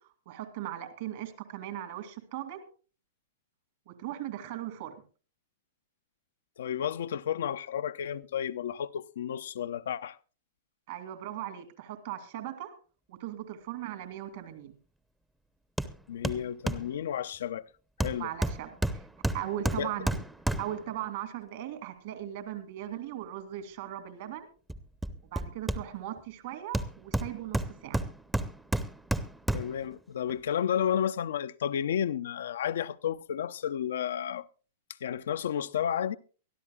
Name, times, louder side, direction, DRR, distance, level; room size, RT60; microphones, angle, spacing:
voice 1, 0.3-2.6 3.9-4.9 10.9-12.7 13.1-14.8 18.2-18.8 19.3-20.2 20.6-24.5 25.3-28.0, right 12 dB, 55° right, 2.4 m, -38 dB
voice 2, 6.6-10.2 16.1-17.7 18.0-18.3 19.8-19.9 29.5-34.4 35.0-36.2, left 9 dB, 65° left, 0.5 m, -32 dB
Hammer, 15.8-16.0 16.2-16.9 18.0-20.9 24.7-26.2 26.7-29.8 30.3-30.4, right 1 dB, 5° right, 0.8 m, -31 dB
23.5 x 13.0 x 2.4 m
figure-of-eight pair, 100°, 0 cm